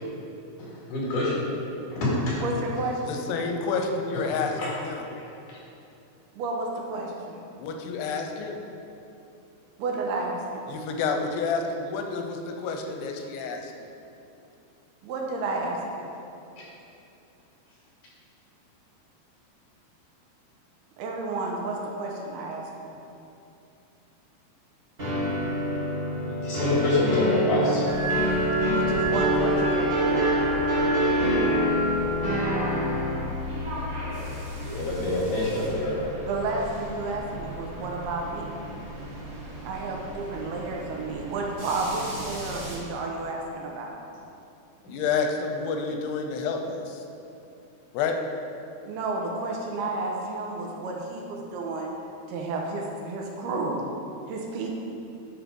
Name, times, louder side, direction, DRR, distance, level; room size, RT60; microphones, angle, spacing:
voice 1, 0.6-1.4 1.9-2.4 4.6-4.7 5.5-5.6 26.4-27.9 34.7-36.0, left 2 dB, 55° left, -7 dB, 3.4 m, -26 dB
voice 2, 2.4-3.3 6.3-7.4 9.8-10.7 15.0-16.2 21.0-23.0 28.7-29.9 36.3-38.6 39.6-44.0 48.9-51.9 52.3-53.8 54.3-54.7, right 3 dB, 80° right, 0 dB, 2.7 m, -31 dB
voice 3, 3.1-5.0 7.6-8.6 10.7-13.7 44.9-47.0 47.9-48.1, left 4 dB, 90° left, 4 dB, 2.8 m, -29 dB
sound 1, 25.0-33.3, equal, 35° right, 0.9 m, -25 dB
sound 2, 27.9-42.8, right 1 dB, 60° right, 1.1 m, -33 dB
10.0 x 4.7 x 5.2 m, 2.7 s
omnidirectional pair, 4.6 m